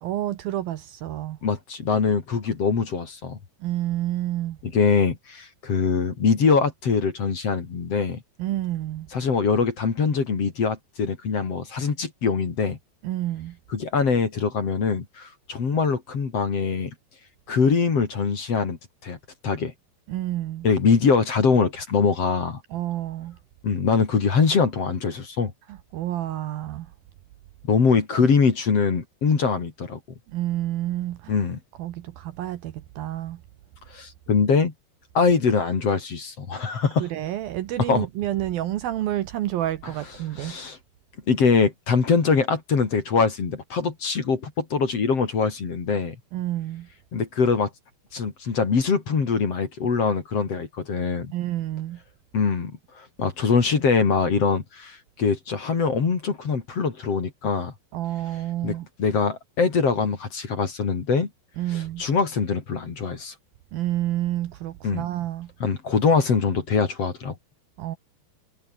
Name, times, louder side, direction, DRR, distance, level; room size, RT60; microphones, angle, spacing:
voice 1, 0.0-1.4 3.6-4.6 8.4-9.1 13.0-13.6 20.1-20.7 22.7-23.4 25.7-26.9 28.1-28.3 30.3-31.4 31.8-33.4 37.0-40.6 46.3-46.9 51.3-52.0 57.9-58.9 61.6-62.1 63.7-65.5 67.8-68.0, right 14 dB, 70° right, 2.6 m, -29 dB
voice 2, 1.4-3.4 4.6-8.2 9.1-12.8 13.7-16.9 17.5-19.2 19.4-19.7 20.6-22.6 23.6-25.5 27.7-30.0 31.3-31.6 33.9-34.7 35.1-37.1 37.9-38.1 40.4-40.8 41.3-46.2 47.1-47.7 48.1-51.3 52.3-57.7 58.6-61.3 61.7-63.3 64.8-65.1 65.6-67.4, left 5 dB, 40° left, 3.5 m, -23 dB
omnidirectional pair, 4.9 m